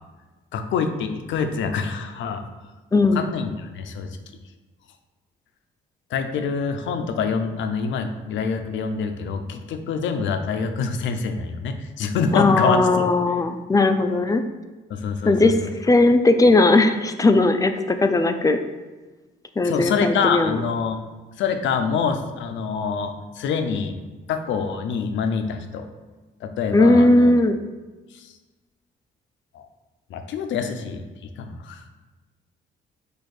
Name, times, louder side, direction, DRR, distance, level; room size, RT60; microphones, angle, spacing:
voice 1, 0.5-2.4 3.1-4.1 6.1-12.8 14.9-15.3 19.6-21.0 21.4-24.0 24.3-25.9 26.4-27.3 28.1-28.3 29.5-29.7 30.1-31.0 31.4-31.8, left 5 dB, 70° left, 7 dB, 0.5 m, -26 dB
voice 2, 2.9-3.3 12.3-14.4 15.3-18.6 19.6-20.6 26.7-27.6, left 2 dB, 15° left, 8 dB, 0.3 m, -18 dB
4.4 x 2.5 x 4.8 m, 1.2 s
cardioid pair, 90°, 20 cm